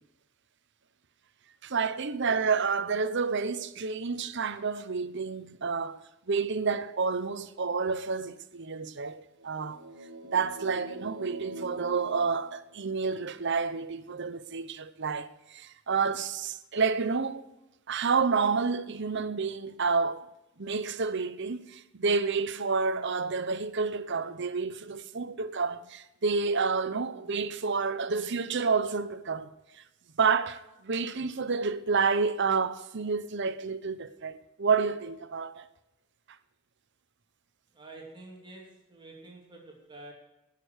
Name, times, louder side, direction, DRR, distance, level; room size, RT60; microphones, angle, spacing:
voice 1, 1.6-9.8 10.2-17.4 17.9-20.3 20.6-29.5 29.8-29.9 30.2-35.7, right 5 dB, 55° right, 0.9 m, -29 dB
sound 1, 9.4-13.2, right 1 dB, 75° right, 1.4 m, -43 dB
voice 2, 37.7-40.1, right 2 dB, 20° right, 2.7 m, -48 dB
19.0 x 6.7 x 6.5 m
head